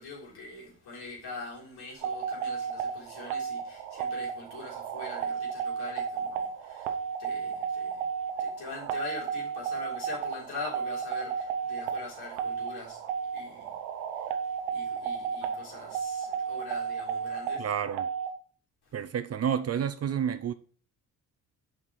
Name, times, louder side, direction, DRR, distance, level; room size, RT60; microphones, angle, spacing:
voice 1, 0.0-17.7 18.8-18.9, left 3 dB, 65° left, 3.2 m, -43 dB
sound 1, 2.0-18.3, right 7 dB, 90° right, 0.7 m, -33 dB
voice 2, 17.6-18.1 18.9-20.5, right 8 dB, 40° right, 0.6 m, -30 dB
5.8 x 4.4 x 4.7 m
hypercardioid pair, 55°, 41 cm